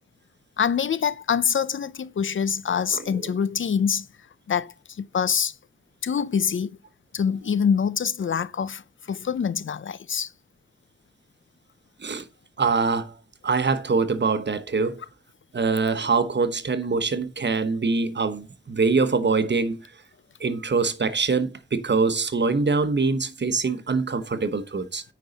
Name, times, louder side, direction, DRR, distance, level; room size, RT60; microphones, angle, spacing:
voice 1, 0.6-4.1 4.5-5.5 6.0-6.8 7.1-8.8 9.1-10.3, left 7 dB, 90° left, 0.6 m, -25 dB
voice 2, 12.6-13.2 13.4-15.0 15.5-19.8 20.4-25.0, right 4 dB, 65° right, 1.1 m, -24 dB
9.3 x 5.3 x 4.0 m
wide cardioid pair, 75°, 20 cm